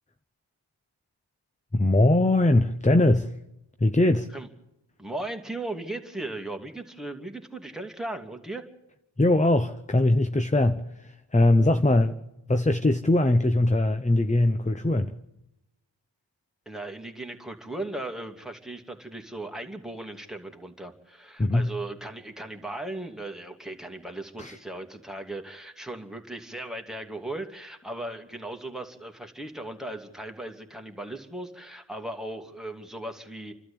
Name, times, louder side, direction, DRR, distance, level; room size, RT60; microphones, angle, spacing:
voice 1, 1.7-3.3 3.8-4.3 9.2-12.2 12.5-15.1 21.4-21.7 24.4-24.6, left 1 dB, 15° left, 0.9 m, -21 dB
voice 2, 5.0-8.6 16.7-33.5, right 2 dB, ahead, 2.7 m, -37 dB
29.5 x 12.5 x 8.7 m
cardioid pair, 65°, 48 cm